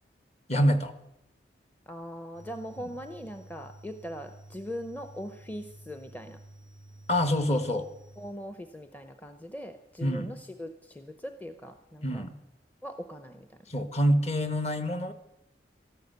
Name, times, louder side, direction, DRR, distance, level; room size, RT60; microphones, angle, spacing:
voice 1, 0.5-0.9 7.1-7.9 10.0-10.3 12.0-12.3 13.7-15.1, equal, 35° left, 10 dB, 1.2 m, -26 dB
voice 2, 1.9-6.4 8.2-12.3 12.8-13.5, equal, 10° left, 8 dB, 0.6 m, -40 dB
sound 1, 2.3-8.3, right 1 dB, 85° left, 2.2 m, -51 dB
13.5 x 12.0 x 8.0 m, 0.85 s
head